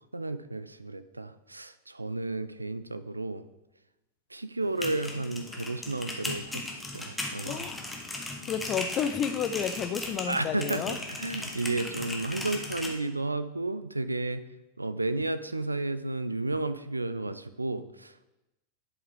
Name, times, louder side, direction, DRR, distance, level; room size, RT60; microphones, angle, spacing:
voice 1, 0.1-3.4 4.3-7.6 10.3-14.4 14.8-18.2, right 2 dB, 80° right, 13 dB, 0.4 m, -32 dB
sound 1, 4.6-12.9, left 2 dB, 10° left, 1.3 m, -37 dB
voice 2, 7.5-7.8 8.5-11.0, left 8 dB, 30° left, 13 dB, 0.5 m, -31 dB
10.5 x 5.8 x 3.5 m, 0.97 s
figure-of-eight pair, 90°, 0 cm